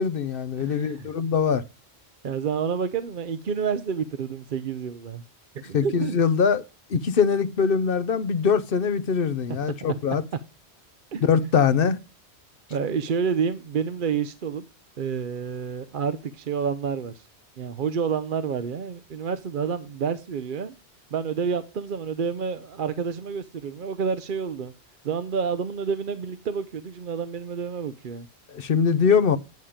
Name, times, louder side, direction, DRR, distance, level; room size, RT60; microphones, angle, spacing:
voice 1, 0.0-1.6 5.7-6.6 6.9-10.2 11.2-12.0 28.5-29.4, left 6 dB, 60° left, 0.9 m, -22 dB
voice 2, 0.6-1.1 2.2-5.2 5.5-6.2 9.5-9.6 11.1-11.2 12.7-14.6 15.0-17.3 17.6-20.8 21.1-24.7 25.0-28.3, right 6 dB, 55° right, 0.8 m, -29 dB
9.4 x 7.2 x 5.0 m
omnidirectional pair, 1.1 m